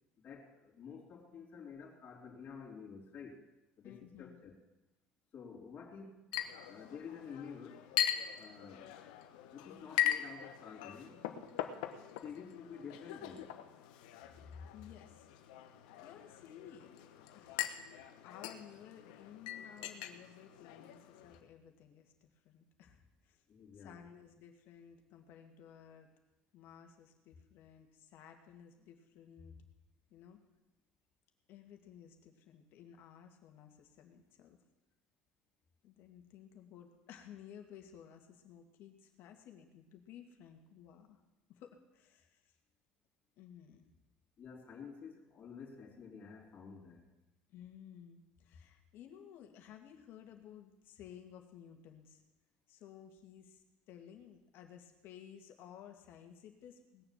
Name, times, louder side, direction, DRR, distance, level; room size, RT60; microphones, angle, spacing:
voice 1, 0.2-3.4 3.8-4.6 5.3-6.3 6.6-7.9 8.3-9.0 9.5-11.3 12.2-13.6 23.5-24.0 44.4-47.1, left 6 dB, 40° left, -3 dB, 3.4 m, -50 dB
voice 2, 3.8-4.4 14.3-15.3 15.7-17.7 18.1-23.4 23.7-26.1 26.5-29.6 30.1-30.4 31.5-34.6 35.8-41.2 41.5-42.5 43.4-43.9 47.5-52.2 52.7-57.0, left 9 dB, 65° left, 5 dB, 2.2 m, -55 dB
Chink clink, 6.3-21.4, left 12 dB, 90° left, 1.1 m, -41 dB
19.5 x 7.0 x 7.4 m, 0.99 s
supercardioid pair, 100°, 4 cm